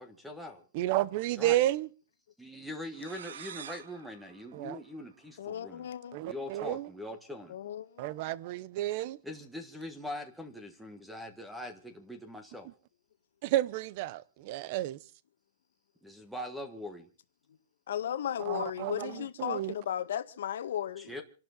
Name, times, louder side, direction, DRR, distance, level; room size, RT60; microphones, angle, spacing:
voice 1, 0.0-0.6 1.4-1.6 2.4-5.9 6.2-7.6 9.2-12.7 16.0-17.1 21.0-21.2, left 1 dB, ahead, 1.5 m, -42 dB
voice 2, 0.7-1.9 4.5-4.8 6.1-6.9 8.0-9.2 12.6-12.7 13.4-15.0 18.4-19.7, right 15 dB, 35° right, 0.9 m, -31 dB
sound 1, 2.9-5.5, right 8 dB, 90° right, 1.2 m, -48 dB
voice 3, 5.4-6.2 7.5-8.1 17.9-21.1, left 10 dB, 65° left, 1.6 m, -35 dB
28.0 x 12.0 x 4.1 m
supercardioid pair, 175°, 0 cm